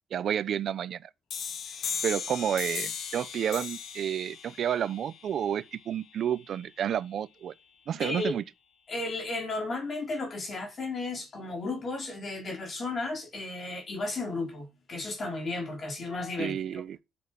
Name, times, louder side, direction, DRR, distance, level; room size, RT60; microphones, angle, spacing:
voice 1, 0.1-1.1 2.0-7.5 7.9-8.4 16.4-17.0, right 9 dB, 65° right, 0.9 m, -30 dB
sound 1, 1.3-6.7, left 6 dB, 65° left, 2.5 m, -38 dB
voice 2, 1.7-2.0 8.0-8.4 8.9-16.8, left 3 dB, 45° left, 4.4 m, -34 dB
11.0 x 7.5 x 6.0 m
cardioid pair, 90°, 0 cm